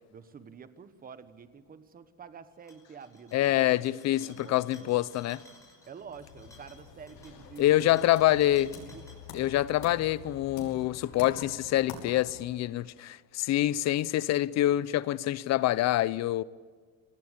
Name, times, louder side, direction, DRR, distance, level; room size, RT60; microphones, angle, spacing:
voice 1, 0.1-3.9 4.2-5.0 5.8-8.0 8.4-9.1, right 6 dB, 25° right, 1.2 m, -48 dB
sound 1, 2.5-9.5, left 2 dB, 10° left, 5.6 m, -58 dB
voice 2, 3.3-5.4 7.6-8.7 9.3-16.4, left 14 dB, 50° left, 0.6 m, -26 dB
sound 2, 6.0-12.6, left 5 dB, 75° left, 5.4 m, -47 dB
25.5 x 18.5 x 8.3 m
cardioid pair, 150°, 35 cm